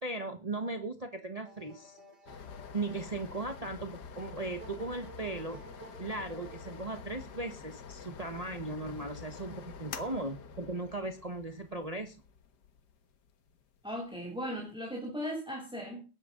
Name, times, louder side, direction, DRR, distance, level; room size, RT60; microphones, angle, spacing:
voice 1, 0.0-2.0 2.7-5.6 6.0-12.2, right 2 dB, 25° right, 1.4 m, -37 dB
sound 1, 1.4-7.0, right 3 dB, 80° right, 4.2 m, -55 dB
sound 2, 2.3-14.7, left 6 dB, 80° left, 1.9 m, -47 dB
voice 2, 13.8-16.0, equal, 5° right, 3.0 m, -37 dB
19.5 x 11.0 x 3.9 m
omnidirectional pair, 1.8 m